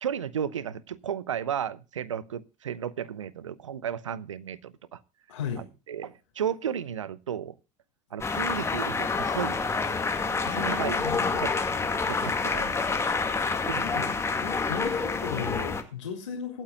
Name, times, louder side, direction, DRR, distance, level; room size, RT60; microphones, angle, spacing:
voice 1, 0.0-5.0 5.6-7.6 8.1-9.7 10.6-11.5 12.1-12.7 13.4-14.1, right 8 dB, 75° right, 0.8 m, -34 dB
voice 2, 5.3-5.7 10.4-11.5 13.8-14.1 14.4-16.6, left 7 dB, 75° left, 3.2 m, -36 dB
sound 1, 8.2-15.8, left 4 dB, 15° left, 2.1 m, -28 dB
24.5 x 9.1 x 2.4 m
figure-of-eight pair, 70°, 16 cm